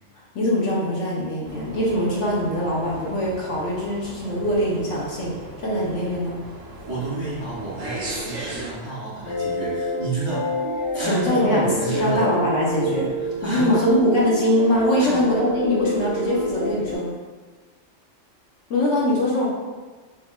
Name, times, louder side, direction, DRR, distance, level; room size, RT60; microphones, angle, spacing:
voice 1, 0.3-5.3 5.6-6.4 11.0-13.1 13.4-17.1 18.7-19.5, equal, 70° left, -5 dB, 1.0 m, -22 dB
sound 1, 1.4-8.7, right 2 dB, 75° right, 0.9 m, -38 dB
voice 2, 6.9-10.5 10.9-12.2 13.4-13.9 15.0-15.2, right 2 dB, 30° right, -12 dB, 1.0 m, -30 dB
sound 2, 9.2-17.0, left 1 dB, 90° left, 1.3 m, -28 dB
3.5 x 2.5 x 2.2 m, 1.4 s
omnidirectional pair, 1.3 m